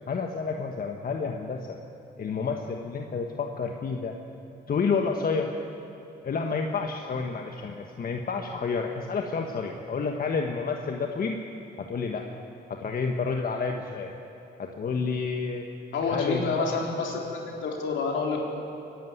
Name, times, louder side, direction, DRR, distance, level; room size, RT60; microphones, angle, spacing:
voice 1, 0.1-1.8 2.2-4.1 4.7-5.5 6.2-11.4 11.8-12.2 12.8-14.1 14.6-15.7 16.0-16.7, left 5 dB, 50° left, 3 dB, 1.4 m, -29 dB
voice 2, 15.9-18.4, left 4 dB, 70° left, 0 dB, 3.9 m, -28 dB
23.5 x 11.5 x 9.5 m, 2.9 s
cardioid pair, 90°, 20 cm